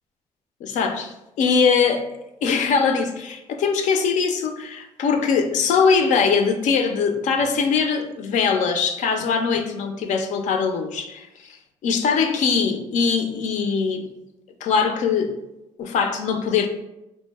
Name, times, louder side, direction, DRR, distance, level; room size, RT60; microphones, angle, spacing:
voice 1, 0.6-2.0 2.4-14.1 14.6-15.4 15.8-16.7, left 5 dB, 80° left, 5 dB, 0.5 m, -22 dB
4.0 x 2.1 x 3.3 m, 0.91 s
cardioid pair, 75°, 12 cm